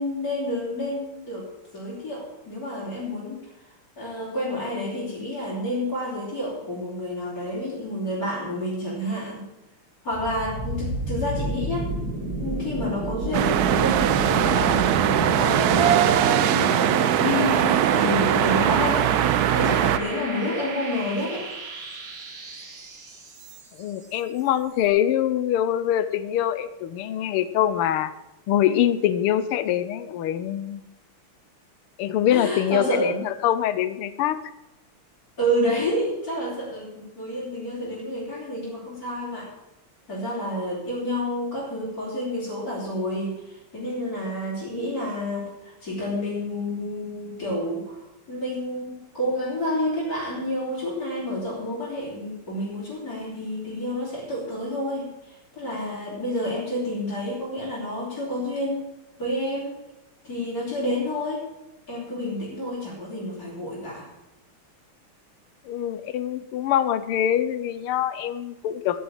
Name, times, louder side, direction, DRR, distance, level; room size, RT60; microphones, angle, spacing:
voice 1, 0.0-1.5 1.7-9.5 10.0-11.9 12.4-19.0 19.5-21.5 32.3-33.2 35.4-39.5 40.1-58.8 59.2-59.7 60.2-61.4 61.9-64.1, left 1 dB, 40° left, -9 dB, 4.3 m, -29 dB
sound 1, 10.1-23.9, right 2 dB, 40° right, 2.5 m, -31 dB
sound 2, 13.3-20.0, right 11 dB, 75° right, 0.8 m, -21 dB
voice 2, 23.7-28.1 28.5-30.8 32.0-34.4 65.6-69.0, left 11 dB, 85° left, 13 dB, 1.7 m, -24 dB
14.0 x 6.6 x 8.9 m, 0.96 s
omnidirectional pair, 2.4 m